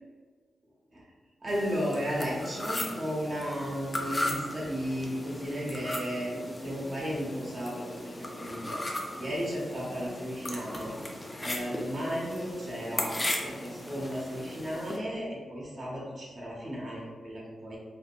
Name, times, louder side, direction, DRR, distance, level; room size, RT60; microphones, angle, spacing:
voice 1, 1.4-8.8 9.2-10.9 11.4-17.8, equal, 40° right, -5 dB, 0.8 m, -34 dB
sound 1, 1.5-15.0, left 1 dB, 20° left, 0.4 m, -37 dB
3.5 x 2.1 x 2.4 m, 1.5 s
cardioid pair, 80°, 0 cm